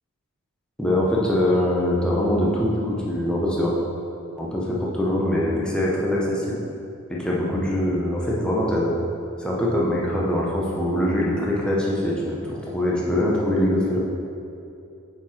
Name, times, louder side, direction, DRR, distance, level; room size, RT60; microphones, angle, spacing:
voice 1, 0.8-3.7 4.4-6.6 7.1-8.9 9.4-14.0, left 1 dB, 5° left, -5 dB, 0.9 m, -23 dB
5.9 x 4.7 x 4.3 m, 2.7 s
head